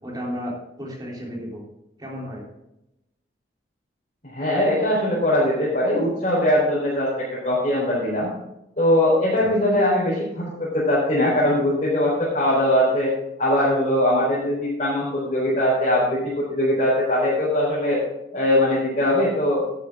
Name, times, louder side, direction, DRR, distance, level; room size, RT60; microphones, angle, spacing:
voice 1, 0.0-1.6 2.0-2.4 9.4-9.5, equal, 20° right, -3 dB, 3.6 m, -33 dB
voice 2, 4.2-8.3 8.8-13.1 13.4-18.0 18.3-19.6, left 1 dB, 40° left, -8 dB, 4.1 m, -21 dB
11.5 x 10.0 x 3.8 m, 0.86 s
head